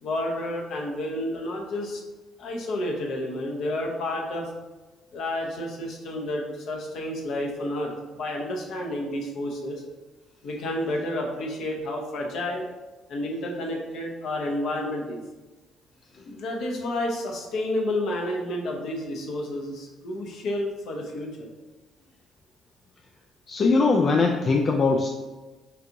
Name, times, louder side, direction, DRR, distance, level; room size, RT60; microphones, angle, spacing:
voice 1, 0.0-2.0 2.4-4.5 5.1-9.8 10.4-12.7 13.1-15.2 16.3-21.5, left 1 dB, 65° left, 0 dB, 0.8 m, -30 dB
voice 2, 23.5-25.1, left 4 dB, 45° left, 2 dB, 0.3 m, -21 dB
5.5 x 2.5 x 2.8 m, 1.2 s
hypercardioid pair, 50°, 0 cm